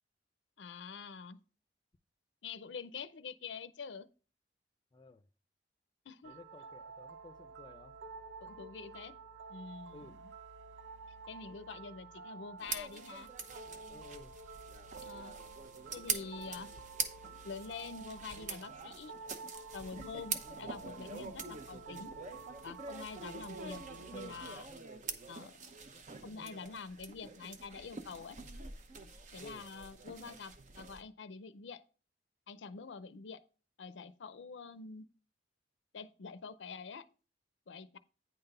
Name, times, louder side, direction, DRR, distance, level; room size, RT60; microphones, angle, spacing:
voice 1, 0.6-1.4 2.4-4.1 6.1-6.4 8.4-9.2 9.5-10.3 11.3-13.3 15.0-15.3 15.9-16.7 17.4-19.1 19.7-22.1 22.6-23.8 24.1-24.7 25.3-25.7 26.2-28.4 29.3-31.8 32.5-33.4 33.8-35.0 35.9-37.1 37.7-38.0, left 5 dB, 90° left, 0.6 m, -46 dB
voice 2, 4.9-5.2 6.2-7.9 9.9-10.2 13.9-14.4 29.4-29.6, left 2 dB, 25° left, 0.5 m, -54 dB
sound 1, 6.2-24.6, right 4 dB, 85° right, 0.7 m, -50 dB
sound 2, 12.6-31.0, right 5 dB, 45° right, 0.8 m, -45 dB
9.4 x 3.9 x 5.4 m
head